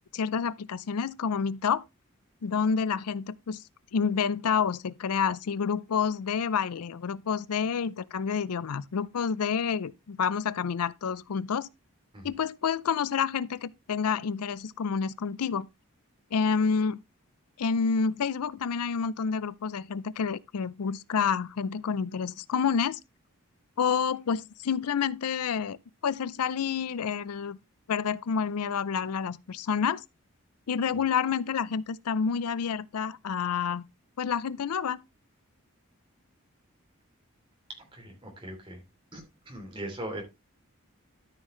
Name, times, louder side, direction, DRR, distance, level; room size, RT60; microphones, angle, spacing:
voice 1, 0.1-1.8 2.4-3.6 3.9-11.7 12.2-15.7 16.3-17.0 17.6-23.0 23.8-25.8 26.0-27.6 27.9-30.0 30.7-33.8 34.2-35.0, left 6 dB, 90° left, 0.5 m, -28 dB
voice 2, 37.9-38.8 39.1-40.2, right 1 dB, 20° right, 2.9 m, -40 dB
13.0 x 5.6 x 3.1 m
head